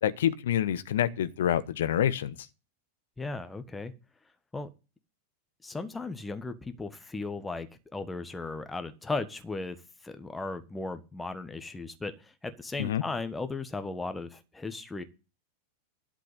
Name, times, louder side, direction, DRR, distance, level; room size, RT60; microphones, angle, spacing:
voice 1, 0.0-2.4 12.8-13.0, left 10 dB, 60° left, 1.0 m, -27 dB
voice 2, 3.2-3.9 4.5-4.7 5.6-9.8 10.0-15.0, left 3 dB, 10° left, 1.4 m, -36 dB
12.0 x 5.2 x 8.2 m
figure-of-eight pair, 90°, 0 cm